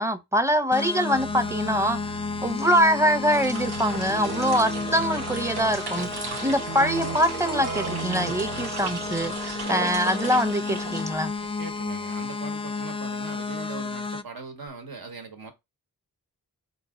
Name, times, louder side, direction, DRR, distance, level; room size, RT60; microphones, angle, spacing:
voice 1, 0.0-2.0 2.4-6.1 6.4-11.3, equal, 5° right, 0.7 m, -24 dB
sound 1, 0.7-14.2, left 4 dB, 15° left, 0.3 m, -32 dB
Keyboard (musical), 1.1-9.5, right 4 dB, 55° right, 0.7 m, -38 dB
sound 2, 3.2-11.6, right 5 dB, 85° right, 0.9 m, -36 dB
voice 2, 11.4-15.5, right 4 dB, 70° right, 1.2 m, -40 dB
3.9 x 2.7 x 3.7 m
cardioid pair, 40°, 38 cm